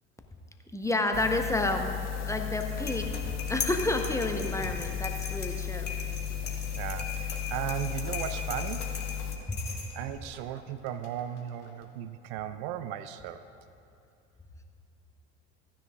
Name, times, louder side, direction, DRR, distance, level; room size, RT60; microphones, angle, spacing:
voice 1, 0.7-1.9 2.3-3.1 3.5-5.9 9.5-9.6, left 2 dB, 10° left, 4 dB, 0.9 m, -30 dB
sound 1, 1.1-9.4, left 9 dB, 50° left, 0.8 m, -35 dB
sound 2, 2.1-11.9, left 5 dB, 80° left, 1.1 m, -48 dB
sound 3, 2.6-10.2, left 5 dB, 30° left, 1.6 m, -39 dB
voice 2, 6.7-9.0 9.9-13.4, right 10 dB, 70° right, 12 dB, 0.5 m, -36 dB
15.0 x 9.9 x 2.4 m, 2.6 s
hypercardioid pair, 70°, 35 cm